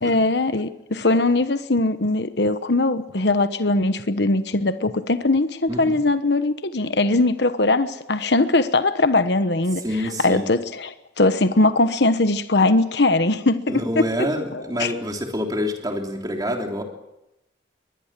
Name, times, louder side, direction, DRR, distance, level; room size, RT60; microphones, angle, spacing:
voice 1, 0.0-9.8 10.2-14.3 14.5-14.9, left 2 dB, 65° left, 11 dB, 1.1 m, -20 dB
voice 2, 5.7-6.0 9.8-10.5 13.7-16.8, equal, 20° right, 3 dB, 3.4 m, -27 dB
23.0 x 20.5 x 7.5 m, 0.90 s
head